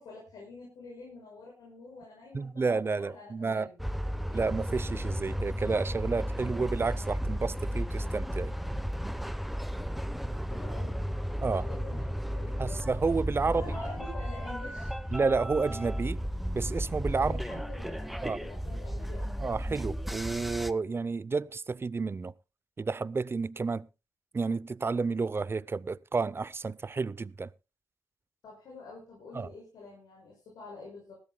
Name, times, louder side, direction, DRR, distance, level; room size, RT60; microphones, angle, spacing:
voice 1, 0.0-3.8 10.2-11.1 11.5-12.8 13.4-14.9 17.2-19.3 28.4-31.1, left 3 dB, 90° left, 6.1 m, -47 dB
voice 2, 2.3-3.7 4.3-8.5 11.4-11.6 12.6-13.7 15.1-16.2 16.5-17.3 18.2-18.4 19.4-22.3 22.8-23.9 24.3-27.5 29.3-29.5, right 4 dB, 35° right, 0.5 m, -30 dB
sound 1, 3.8-20.7, equal, ahead, 0.9 m, -34 dB
20.0 x 14.5 x 2.2 m
cardioid pair, 65°, 7 cm